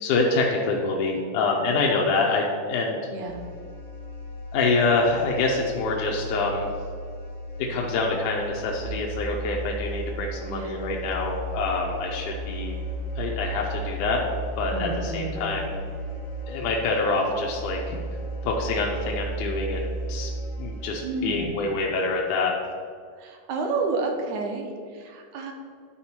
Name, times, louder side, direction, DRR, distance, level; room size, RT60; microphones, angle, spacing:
voice 1, 0.0-3.0 4.5-6.7 7.7-12.8 13.2-14.2 14.6-15.8 16.5-18.0 18.5-20.3 20.6-22.5, left 3 dB, 80° left, -1 dB, 2.2 m, -26 dB
sound 1, 3.3-21.4, right 1 dB, 55° left, 0.8 m, -35 dB
voice 2, 10.5-10.8 14.7-15.5 21.0-21.6 23.2-25.5, right 3 dB, 75° right, 2 dB, 2.3 m, -30 dB
11.0 x 4.5 x 4.3 m, 2.1 s
omnidirectional pair, 3.7 m